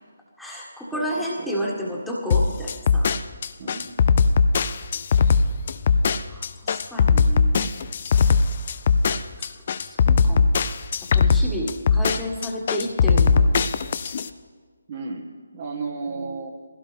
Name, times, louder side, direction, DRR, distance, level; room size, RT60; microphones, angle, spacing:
voice 1, 0.4-3.1 4.6-5.0 6.3-7.7 9.4-9.5 9.9-10.5 11.1-13.6 16.1-16.4, equal, ahead, -4 dB, 1.8 m, -31 dB
voice 2, 0.9-1.6 3.6-3.9 14.9-15.2 15.5-16.5, right 4 dB, 35° right, 1 dB, 1.5 m, -33 dB
sound 1, 2.3-14.3, left 5 dB, 40° left, 0.5 m, -19 dB
22.0 x 16.0 x 3.5 m, 1.5 s
figure-of-eight pair, 150°, 0 cm